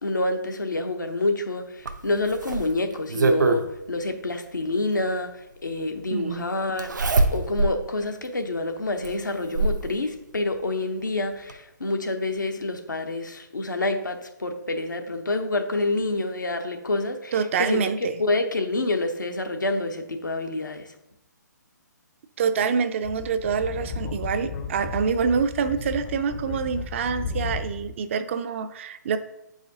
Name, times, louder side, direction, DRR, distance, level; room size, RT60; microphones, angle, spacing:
voice 1, 0.0-6.9 7.3-21.0, left 2 dB, 85° left, 5 dB, 0.8 m, -27 dB
Zipper (clothing), 1.9-3.6 5.1-5.2 6.8-7.8 8.2-8.3 9.0-9.9 11.1-11.2 11.5-11.6, right 3 dB, 75° right, 0.7 m, -23 dB
voice 2, 6.1-6.5 17.3-18.1 22.4-29.2, right 6 dB, 40° right, 10 dB, 0.4 m, -26 dB
Speech / Wind, 23.0-27.9, left 5 dB, 25° left, 0.5 m, -34 dB
8.4 x 4.9 x 2.7 m, 0.85 s
figure-of-eight pair, 135°, 10 cm